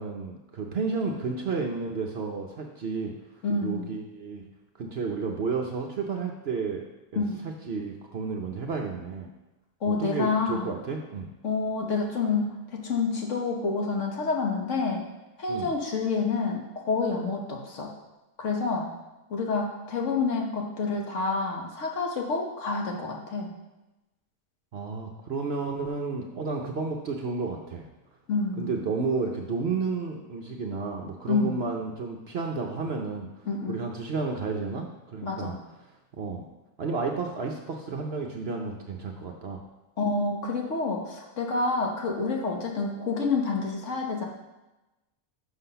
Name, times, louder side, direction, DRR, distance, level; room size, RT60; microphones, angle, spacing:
voice 1, 0.0-3.1 3.6-4.5 4.8-6.8 7.1-9.3 9.8-11.3 15.5-15.7 24.7-27.9 28.6-33.3 33.7-34.9 35.1-35.5 36.2-36.4 36.8-39.6, right 4 dB, 55° right, 2 dB, 0.8 m, -31 dB
voice 2, 3.4-3.9 7.1-7.4 9.8-10.7 11.4-15.1 15.4-17.9 18.4-18.9 19.3-23.5 28.3-28.8 31.3-31.6 33.4-33.8 35.2-35.6 40.0-44.3, left 4 dB, 60° left, 0 dB, 1.4 m, -28 dB
6.1 x 5.9 x 5.6 m, 1.0 s
omnidirectional pair, 1.5 m